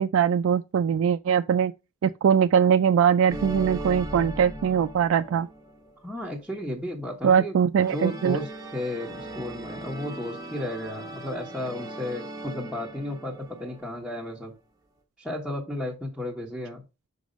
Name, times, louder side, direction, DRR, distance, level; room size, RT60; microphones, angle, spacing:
voice 1, 0.0-1.7 2.0-5.5 7.2-8.4, right 7 dB, 85° right, 0.3 m, -21 dB
sound 1, 3.3-5.9 7.8-14.1, right 1 dB, 20° right, 1.2 m, -38 dB
voice 2, 6.0-7.5 7.9-14.5 15.2-16.8, left 1 dB, ahead, 1.2 m, -33 dB
5.3 x 4.9 x 5.1 m
head